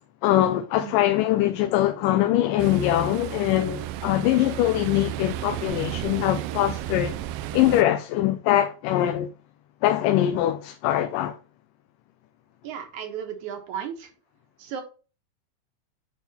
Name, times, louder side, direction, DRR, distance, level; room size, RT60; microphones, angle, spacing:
voice 1, 0.2-7.2 7.5-9.3 9.8-11.4, left 13 dB, 80° left, 2.2 m, -22 dB
Ocean, 2.6-7.8, right 14 dB, 80° right, 2.1 m, -33 dB
voice 2, 12.6-14.1 14.6-14.8, right 8 dB, 65° right, 2.6 m, -34 dB
10.5 x 3.6 x 4.2 m
omnidirectional pair, 3.9 m